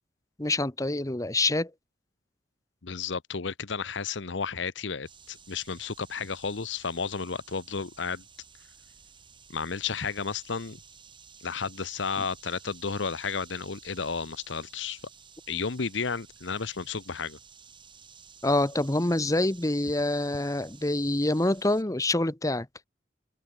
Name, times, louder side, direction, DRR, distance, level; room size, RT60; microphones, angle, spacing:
voice 1, 0.4-1.7 12.2-12.3 18.4-22.7, left 2 dB, 20° left, 1.1 m, -26 dB
voice 2, 2.8-8.2 9.5-10.8 11.4-15.0 15.5-17.4, left 5 dB, 70° left, 0.9 m, -32 dB
sound 1, 5.0-21.8, right 6 dB, 25° right, 6.8 m, -53 dB
open air
head